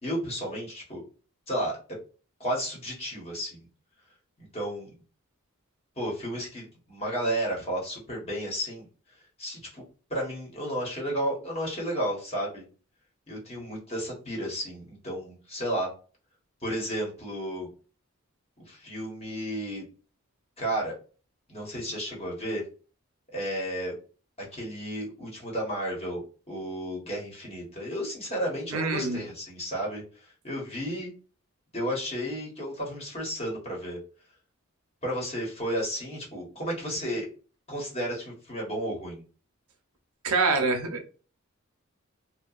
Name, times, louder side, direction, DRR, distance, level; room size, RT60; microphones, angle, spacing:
voice 1, 0.0-1.0 1.5-1.8 2.4-3.7 4.4-4.9 6.0-8.9 9.4-9.8 10.1-12.6 13.3-15.9 16.6-17.7 18.6-19.8 20.6-20.9 21.5-22.6 23.3-23.9 24.4-31.1 31.7-34.0 35.0-37.3 37.7-39.2, equal, 25° left, -3 dB, 1.1 m, -32 dB
voice 2, 28.7-29.2 40.2-41.1, right 3 dB, 80° right, 5 dB, 0.7 m, -25 dB
2.8 x 2.2 x 2.4 m, 0.37 s
head